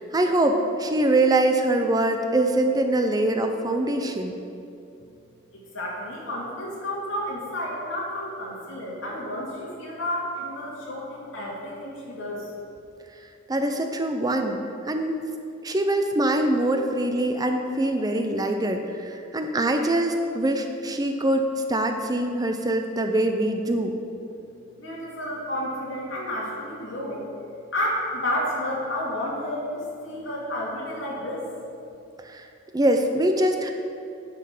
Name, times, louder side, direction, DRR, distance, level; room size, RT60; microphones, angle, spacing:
voice 1, 0.0-4.4 13.5-15.2 15.6-24.0 32.2-32.5 32.7-33.7, right 1 dB, 20° right, 5 dB, 0.4 m, -23 dB
voice 2, 5.5-12.5 24.8-27.2 27.7-31.4, left 1 dB, 65° left, -4 dB, 2.4 m, -31 dB
9.3 x 6.2 x 5.4 m, 2.6 s
head